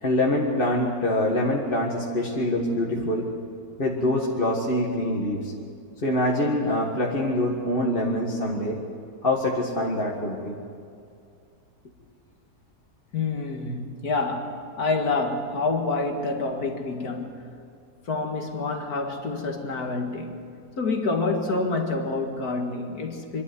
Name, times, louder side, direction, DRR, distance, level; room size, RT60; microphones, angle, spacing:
voice 1, 0.0-3.3 3.8-5.5 6.0-8.8 9.2-10.6, left 1 dB, 35° left, 1.9 m, -25 dB
voice 2, 13.1-17.6 18.1-20.4 20.8-23.4, left 3 dB, 70° left, 2.4 m, -27 dB
25.0 x 12.0 x 9.8 m
omnidirectional pair, 1.7 m